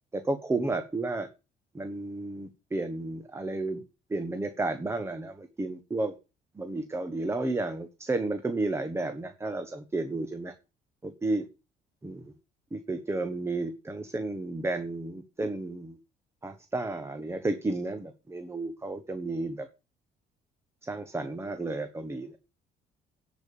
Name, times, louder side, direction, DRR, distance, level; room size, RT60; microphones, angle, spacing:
voice 1, 0.1-1.3 1.7-3.8 4.1-6.1 6.6-10.5 11.2-11.4 12.0-12.3 12.7-16.0 16.4-19.7 20.8-22.3, right 2 dB, 15° right, 8 dB, 1.2 m, -32 dB
10.5 x 5.2 x 6.8 m, 0.30 s
cardioid pair, 110°, 17 cm